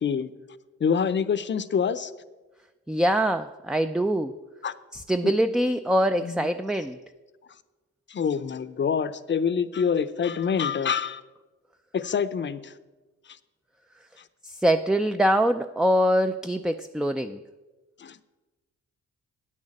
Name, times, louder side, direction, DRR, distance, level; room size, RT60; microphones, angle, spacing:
voice 1, 0.0-0.3 0.8-2.1 4.6-4.7 6.2-6.5 8.1-11.2 11.9-12.7 18.0-18.2, left 6 dB, 40° left, 13 dB, 0.6 m, -26 dB
voice 2, 2.9-4.4 4.9-7.0 14.4-17.4, equal, ahead, 8 dB, 0.3 m, -24 dB
8.9 x 6.5 x 8.6 m, 1.2 s
cardioid pair, 80°, 30 cm